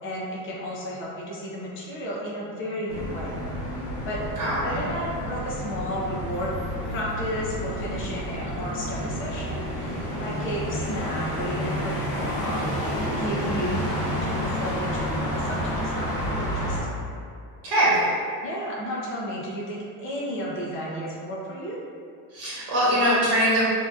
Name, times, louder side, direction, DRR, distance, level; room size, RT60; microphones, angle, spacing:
voice 1, 0.0-3.3 4.0-4.2 4.6-6.5 6.9-17.0 18.4-21.7, equal, 25° left, -5 dB, 0.5 m, -33 dB
sound 1, 2.9-16.8, equal, 50° left, 1.1 m, -30 dB
voice 2, 4.4-4.9 13.3-13.8 17.6-18.1 22.3-23.6, right 1 dB, 55° right, -9 dB, 1.3 m, -23 dB
2.7 x 2.2 x 2.3 m, 2.3 s
supercardioid pair, 80°, 49 cm